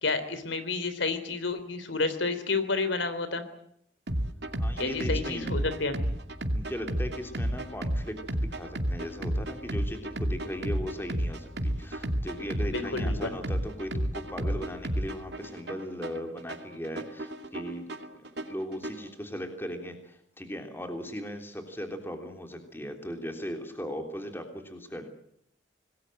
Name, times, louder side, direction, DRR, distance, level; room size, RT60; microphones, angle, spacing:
voice 1, 0.0-3.4 4.8-6.0 12.7-13.3, left 3 dB, 85° left, 12 dB, 3.5 m, -30 dB
sound 1, 4.1-19.1, right 1 dB, 65° right, 2.5 m, -32 dB
voice 2, 4.6-5.5 6.5-17.8 18.2-25.1, equal, 10° left, 5 dB, 3.3 m, -38 dB
26.0 x 20.0 x 7.8 m, 0.71 s
head